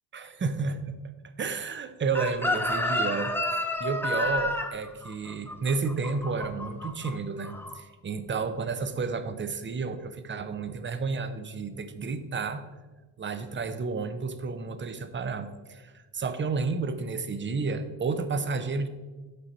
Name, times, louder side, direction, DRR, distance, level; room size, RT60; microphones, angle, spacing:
voice 1, 0.1-1.0 1.4-3.3 3.8-12.6 13.2-18.9, right 4 dB, 25° right, 11 dB, 0.7 m, -31 dB
Chicken rooster, 2.1-7.1 7.4-7.7, left 1 dB, 5° left, 1.1 m, -30 dB
8.4 x 5.8 x 4.2 m, 1.2 s
supercardioid pair, 80°, 46 cm